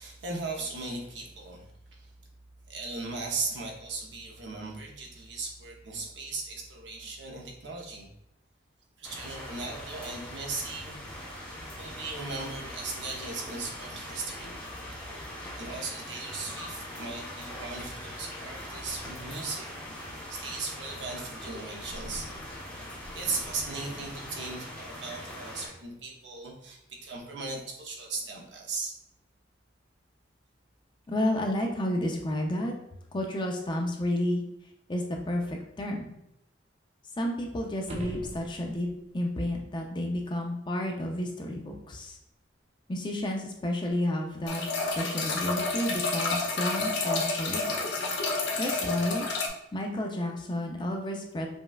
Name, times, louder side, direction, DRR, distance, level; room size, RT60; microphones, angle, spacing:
voice 1, 0.0-2.1 2.7-8.1 9.0-11.0 11.8-14.5 15.6-19.7 20.3-22.3 23.1-28.9, right 3 dB, 70° right, 0 dB, 0.7 m, -37 dB
sound 1, 9.0-25.7, left 1 dB, 10° left, 0.8 m, -41 dB
voice 2, 31.1-32.7 33.1-34.4 34.9-36.1 37.2-38.9 39.1-42.2 42.9-47.8 48.6-49.3 49.7-51.5, left 1 dB, 25° left, 1 dB, 0.4 m, -31 dB
sound 2, 37.8-39.0 43.9-44.0, equal, 30° right, 0.5 m, -40 dB
sound 3, 44.5-49.5, left 3 dB, 70° left, 0.7 m, -30 dB
5.1 x 2.3 x 2.3 m, 0.82 s
head